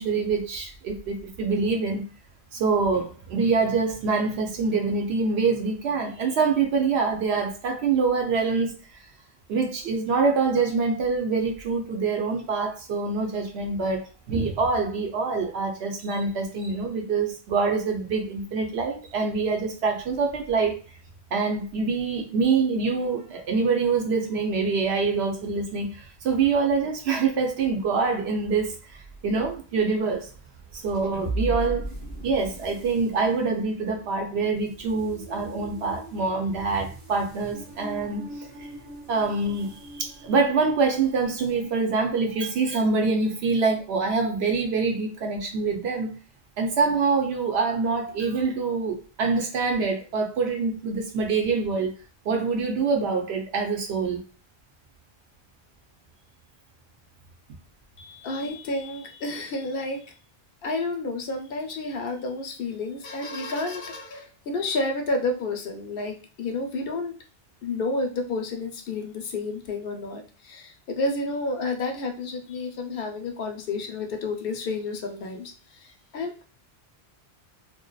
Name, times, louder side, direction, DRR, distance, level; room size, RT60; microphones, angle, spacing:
voice 1, 0.0-2.0 2.5-8.7 9.5-20.8 21.3-28.8 29.2-30.3 30.7-31.9 32.2-38.3 38.6-38.7 39.1-46.1 46.6-51.9 52.3-54.2, right 4 dB, 80° right, 2 dB, 0.8 m, -25 dB
sound 1, 30.7-41.3, right 1 dB, 20° right, 0.7 m, -38 dB
voice 2, 58.0-60.1 60.6-67.1 67.6-76.4, left 2 dB, 65° left, 4 dB, 0.7 m, -30 dB
2.6 x 2.2 x 2.2 m, 0.37 s
omnidirectional pair, 1.1 m